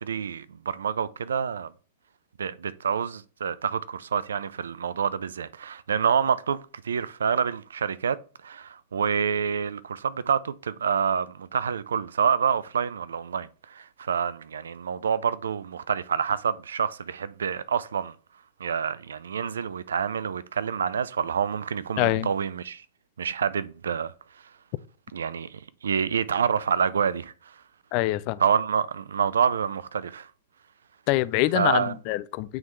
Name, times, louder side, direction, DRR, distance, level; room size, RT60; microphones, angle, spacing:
voice 1, 0.0-1.7 2.4-8.2 8.4-18.1 18.6-22.8 23.2-24.1 25.1-27.3 28.4-30.3 31.5-31.9, right 7 dB, 70° right, 0.4 m, -27 dB
voice 2, 22.0-22.3 27.9-28.4 31.1-32.6, left 17 dB, 45° left, 0.4 m, -25 dB
8.8 x 3.7 x 3.1 m
figure-of-eight pair, 100°, 0 cm